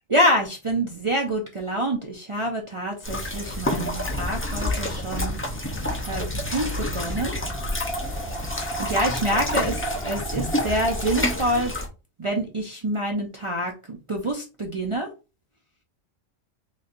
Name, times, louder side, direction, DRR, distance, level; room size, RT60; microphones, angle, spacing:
voice 1, 0.1-7.4 8.8-11.7 12.2-15.1, right 1 dB, 40° right, 0 dB, 0.4 m, -27 dB
sound 1, 3.0-11.9, left 1 dB, 20° left, 0.4 m, -28 dB
sound 2, 4.8-11.4, right 3 dB, ahead, 0.7 m, -36 dB
4.0 x 3.2 x 2.5 m, 0.31 s
omnidirectional pair, 1.3 m